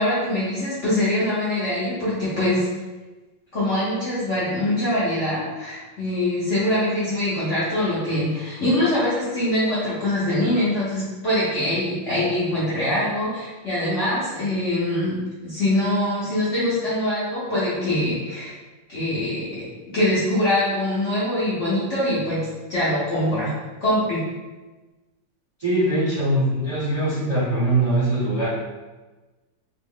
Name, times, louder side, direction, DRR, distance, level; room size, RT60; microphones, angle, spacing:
voice 1, 0.0-2.7 3.5-15.2 15.4-18.5 18.9-19.7 19.9-22.4 22.7-23.5 23.8-24.2, left 1 dB, 50° left, -10 dB, 0.9 m, -23 dB
voice 2, 25.6-28.5, right 1 dB, 25° right, -12 dB, 0.9 m, -22 dB
3.0 x 2.4 x 3.6 m, 1.2 s
omnidirectional pair, 2.0 m